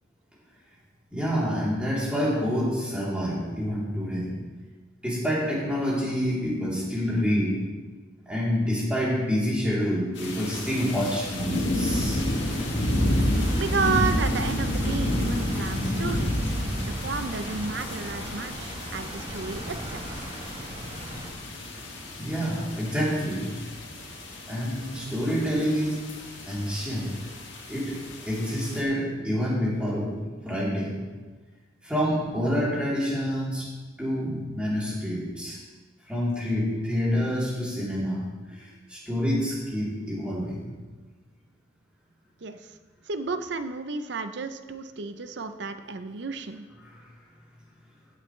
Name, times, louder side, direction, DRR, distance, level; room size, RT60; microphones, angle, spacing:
voice 1, 1.1-4.3 5.0-7.6 8.2-12.3 22.2-23.5 24.5-26.0 26.5-27.1 27.7-28.0 28.2-30.9 31.8-33.7 34.0-35.6 36.1-38.2 38.5-40.6 46.8-47.1, equal, 5° right, -7 dB, 3.4 m, -27 dB
sound 1, 10.2-28.8, left 1 dB, 70° left, 2.0 m, -30 dB
sound 2, 11.9-21.3, right 1 dB, 30° right, 1.5 m, -40 dB
voice 2, 13.6-20.0 42.4-42.7 43.1-46.7, right 4 dB, 60° right, 10 dB, 0.6 m, -32 dB
15.5 x 8.5 x 3.3 m, 1.3 s
head